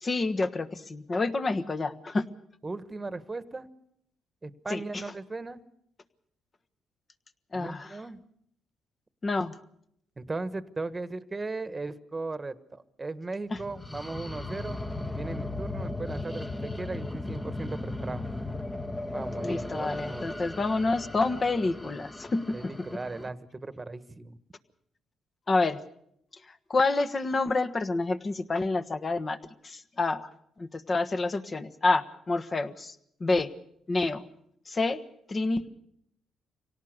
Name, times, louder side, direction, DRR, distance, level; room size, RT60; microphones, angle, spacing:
voice 1, 0.0-2.3 4.7-5.0 7.5-8.0 9.2-9.6 13.5-13.6 19.4-22.7 25.5-25.8 26.4-29.4 29.6-30.3 30.6-32.9 33.2-33.5 33.9-34.2 34.7-35.0 35.3-35.7, left 3 dB, 35° left, 11 dB, 1.3 m, -28 dB
voice 2, 2.6-3.7 4.4-5.6 7.5-8.2 10.2-14.8 15.1-18.2 19.1-20.3 22.5-24.4, right 3 dB, 20° right, 13 dB, 1.3 m, -37 dB
sound 1, 13.5-23.3, left 2 dB, 15° left, 1.2 m, -36 dB
25.5 x 18.0 x 6.5 m, 0.71 s
cardioid pair, 90°, 0 cm